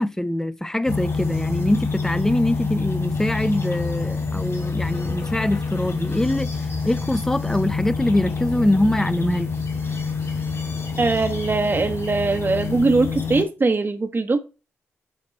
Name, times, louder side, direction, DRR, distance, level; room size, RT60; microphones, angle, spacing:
voice 1, 0.0-6.5 6.8-9.5, left 1 dB, 10° left, 0.5 m, -23 dB
sound 1, 0.9-13.4, left 4 dB, 45° left, 2.6 m, -27 dB
voice 2, 11.0-14.4, right 3 dB, 35° right, 0.9 m, -21 dB
8.5 x 2.9 x 4.4 m
hypercardioid pair, 40°, 6 cm